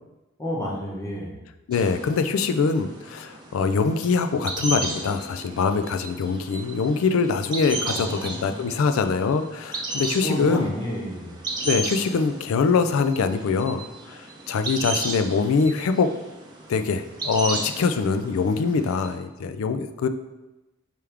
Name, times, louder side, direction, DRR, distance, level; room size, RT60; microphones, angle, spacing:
voice 1, 0.4-1.4 7.9-8.6 10.2-11.4, equal, 15° left, -4 dB, 1.0 m, -31 dB
voice 2, 1.7-10.7 11.6-16.1 16.7-20.1, left 5 dB, 80° left, 9 dB, 0.4 m, -23 dB
sound 1, 1.7-19.1, right 2 dB, 20° right, 0.7 m, -35 dB
4.5 x 3.4 x 3.5 m, 1.0 s
head